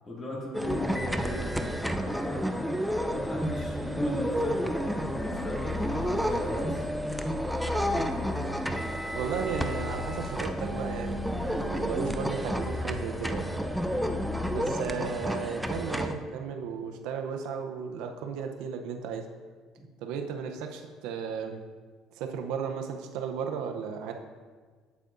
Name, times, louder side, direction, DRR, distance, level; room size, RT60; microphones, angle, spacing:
voice 1, 0.0-2.4 3.0-6.8 13.8-14.2, left 1 dB, 30° left, -4 dB, 2.3 m, -37 dB
sound 1, 0.5-16.1, equal, ahead, 0.4 m, -31 dB
sound 2, 2.8-14.5, left 2 dB, 35° right, 2.3 m, -40 dB
voice 2, 9.1-13.5 14.5-19.3 20.0-21.6 22.1-24.1, right 6 dB, 80° right, 5 dB, 0.6 m, -35 dB
8.3 x 8.0 x 2.6 m, 1.5 s
cardioid pair, 115°, 0 cm